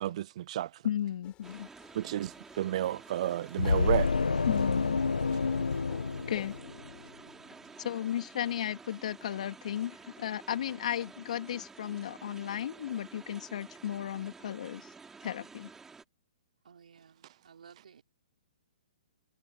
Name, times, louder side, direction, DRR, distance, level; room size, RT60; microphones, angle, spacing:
voice 1, 0.0-0.7 1.9-4.1, right 13 dB, 50° right, 0.4 m, -31 dB
voice 2, 0.8-1.7 4.5-5.0 6.3-6.6 7.8-14.9 15.2-15.7, left 10 dB, 60° left, 2.7 m, -34 dB
sound 1, 1.2-6.6, left 14 dB, 25° left, 7.1 m, -56 dB
sound 2, 1.4-16.0, right 4 dB, 10° right, 3.4 m, -51 dB
sound 3, 3.6-7.0, left 4 dB, 85° left, 1.6 m, -29 dB
voice 3, 16.6-18.0, right 7 dB, 70° right, 5.6 m, -56 dB
hypercardioid pair, 130°, 4 cm